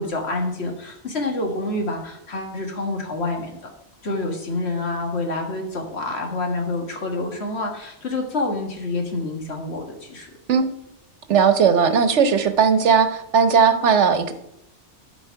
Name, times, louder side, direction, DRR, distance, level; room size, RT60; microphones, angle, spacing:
voice 1, 0.0-3.5 4.0-10.3, left 2 dB, 65° left, 2 dB, 1.9 m, -27 dB
voice 2, 11.3-14.3, right 6 dB, 80° right, 10 dB, 1.2 m, -17 dB
12.5 x 5.0 x 4.6 m, 0.81 s
omnidirectional pair, 1.2 m